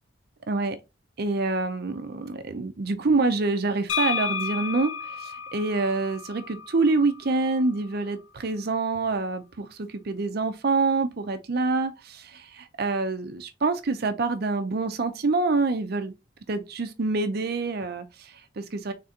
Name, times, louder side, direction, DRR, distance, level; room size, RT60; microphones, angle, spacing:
voice 1, 0.5-0.8 1.2-16.1 16.5-18.9, right 3 dB, 55° right, 0.5 m, -26 dB
sound 1, 3.9-7.7, left 6 dB, 85° left, 0.7 m, -32 dB
4.3 x 3.4 x 3.7 m
head